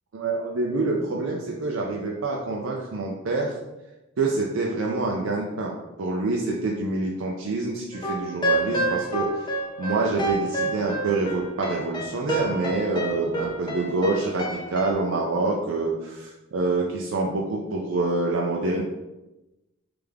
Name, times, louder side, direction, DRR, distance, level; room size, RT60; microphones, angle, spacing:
voice 1, 0.1-3.6 4.2-18.8, right 3 dB, 65° right, -1 dB, 0.5 m, -26 dB
sound 1, 7.9-14.9, right 1 dB, 20° left, 0.5 m, -29 dB
3.4 x 3.4 x 3.5 m, 1.0 s
head